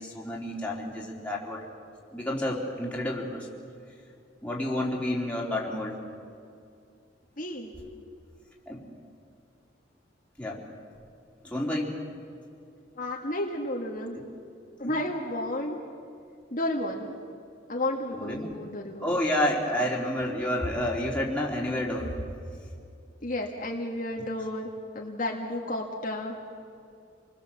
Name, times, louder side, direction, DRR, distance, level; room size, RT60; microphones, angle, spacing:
voice 1, 0.0-1.7 2.1-3.5 4.4-6.0 8.7-8.8 10.4-10.6 11.4-12.0 14.1-14.2 14.8-14.9 18.1-18.6 19.0-22.1, left 1 dB, 5° left, -4 dB, 3.6 m, -30 dB
voice 2, 7.4-7.7 13.0-14.2 14.8-15.8 16.5-17.1 17.7-19.2 23.2-24.7 25.0-26.4, left 1 dB, 45° left, -1 dB, 1.9 m, -32 dB
28.0 x 20.5 x 7.4 m, 2.4 s
head